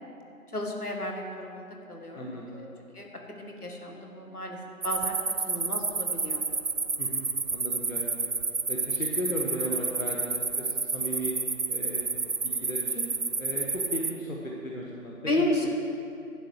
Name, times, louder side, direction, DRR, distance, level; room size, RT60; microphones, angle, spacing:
voice 1, 0.5-2.7 2.9-3.1 3.4-5.2 5.5-6.4 15.3-15.7, left 1 dB, 80° left, 1 dB, 1.8 m, -32 dB
voice 2, 2.1-2.7 7.0-8.3 8.7-11.3 11.7-12.1 12.4-13.1 13.4-15.1, equal, 60° left, -2 dB, 1.3 m, -36 dB
sound 1, 4.8-14.1, right 4 dB, 60° right, 0.5 m, -30 dB
11.5 x 4.8 x 8.1 m, 2.7 s
figure-of-eight pair, 180°, 45 cm